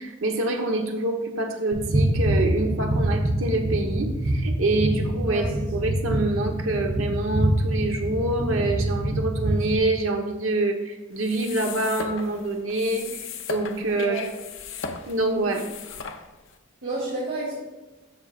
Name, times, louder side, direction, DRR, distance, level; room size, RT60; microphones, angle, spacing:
voice 1, 0.0-14.2 15.1-15.7, right 2 dB, 85° right, 3 dB, 1.2 m, -26 dB
sound 1, 1.7-9.8, right 1 dB, 30° right, 1.1 m, -25 dB
sound 2, 11.1-16.6, left 5 dB, 65° left, 0.8 m, -37 dB
voice 2, 16.8-17.5, right 2 dB, 65° right, -9 dB, 2.8 m, -30 dB
14.5 x 5.8 x 2.5 m, 1.2 s
head